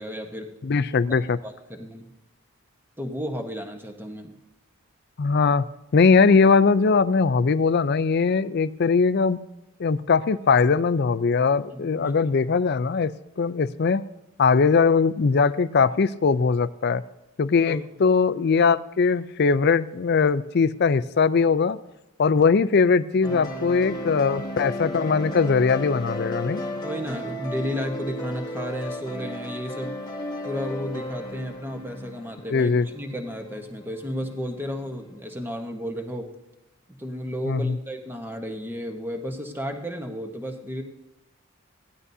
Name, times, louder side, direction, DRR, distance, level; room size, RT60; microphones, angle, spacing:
voice 1, 0.0-0.5 1.4-2.1 3.0-4.4 11.7-12.1 17.7-17.8 26.8-30.1 30.4-36.3 37.0-40.8, equal, 10° right, 3 dB, 1.2 m, -33 dB
voice 2, 0.6-1.4 5.2-5.7 5.9-9.4 9.8-14.0 14.4-17.0 17.4-21.8 22.2-26.6 32.5-32.9 37.5-37.8, left 5 dB, 50° left, 16 dB, 0.4 m, -20 dB
sound 1, 23.2-35.3, equal, 20° left, 1.1 m, -35 dB
17.0 x 11.0 x 2.7 m, 0.96 s
head